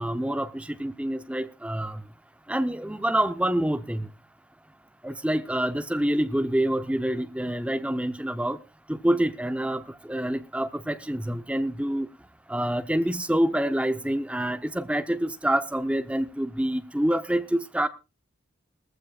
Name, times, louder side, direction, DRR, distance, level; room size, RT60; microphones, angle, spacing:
voice 1, 0.0-2.0 2.5-4.1 5.0-8.6 8.9-9.8 10.1-12.1 12.5-17.9, right 1 dB, 5° right, 0.7 m, -27 dB
19.5 x 14.5 x 2.3 m
head